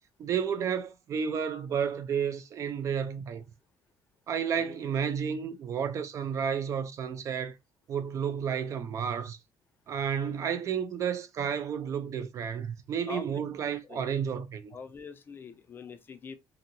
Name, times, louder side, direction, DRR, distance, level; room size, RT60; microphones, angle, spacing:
voice 1, 0.2-3.4 4.3-7.6 7.9-9.4 9.9-14.7, right 7 dB, 40° right, 0.4 m, -31 dB
voice 2, 14.7-16.4, left 5 dB, 25° left, 0.4 m, -43 dB
2.8 x 2.6 x 2.5 m
cardioid pair, 150°, 8 cm